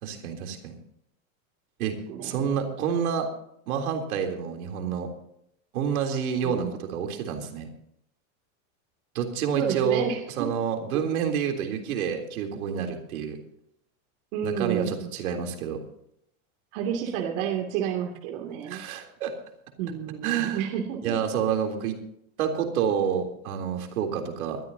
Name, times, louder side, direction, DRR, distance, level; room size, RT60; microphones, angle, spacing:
voice 1, 0.0-0.7 1.8-2.0 2.2-3.3 3.7-5.1 5.7-7.7 9.2-10.1 10.4-13.4 14.4-15.8 18.6-19.3 20.2-20.6 21.0-22.0 22.4-24.6, right 7 dB, 85° right, 4 dB, 3.6 m, -28 dB
voice 2, 2.1-2.5 6.4-6.7 9.5-10.5 14.3-15.0 16.7-18.8 19.8-21.1, right 9 dB, 60° right, 3 dB, 2.8 m, -30 dB
22.5 x 13.5 x 2.8 m, 0.74 s
supercardioid pair, 150°, 42 cm